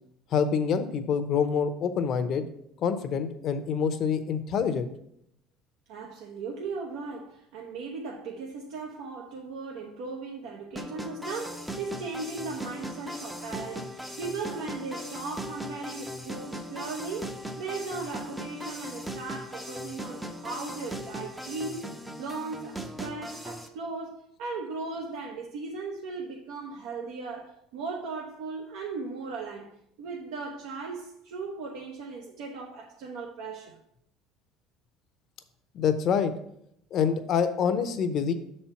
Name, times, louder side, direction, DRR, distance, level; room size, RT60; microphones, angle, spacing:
voice 1, 0.3-2.4 2.8-4.9 35.7-36.3 36.9-38.3, left 6 dB, 45° left, 0.7 m, -26 dB
voice 2, 5.9-21.9 22.2-29.7 30.0-33.8, right 4 dB, 85° right, 0.9 m, -37 dB
sound 1, 10.7-23.7, equal, 5° right, 0.5 m, -38 dB
6.6 x 4.3 x 5.7 m
cardioid pair, 145°, 0 cm